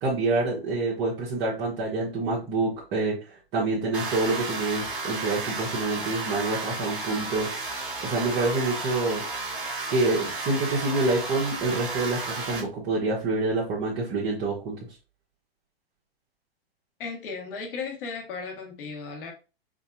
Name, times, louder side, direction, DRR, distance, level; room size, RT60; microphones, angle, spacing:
voice 1, 0.0-7.6 8.0-9.2 9.9-14.8, right 3 dB, 35° right, -6 dB, 1.2 m, -27 dB
sound 1, 3.9-12.6, right 3 dB, 5° right, 1.8 m, -33 dB
voice 2, 17.0-19.3, left 5 dB, 60° left, 1 dB, 1.5 m, -35 dB
5.0 x 2.7 x 2.5 m, 0.33 s
hypercardioid pair, 120°, 30 cm